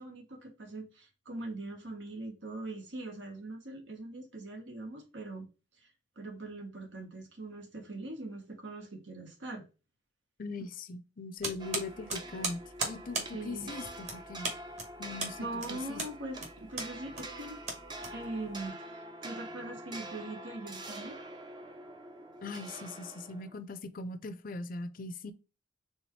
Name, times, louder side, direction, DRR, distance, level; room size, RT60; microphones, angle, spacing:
voice 1, 0.0-5.5 6.2-9.6 13.3-13.7 15.4-17.6 18.1-21.2, right 2 dB, 80° right, 1.4 m, -42 dB
voice 2, 10.4-14.5 15.0-16.0 22.4-25.3, left 3 dB, 50° left, 0.5 m, -41 dB
sound 1, 11.4-18.6, right 3 dB, 40° right, 1.4 m, -38 dB
sound 2, 11.6-23.6, right 1 dB, 25° right, 0.6 m, -45 dB
4.3 x 3.4 x 3.1 m
head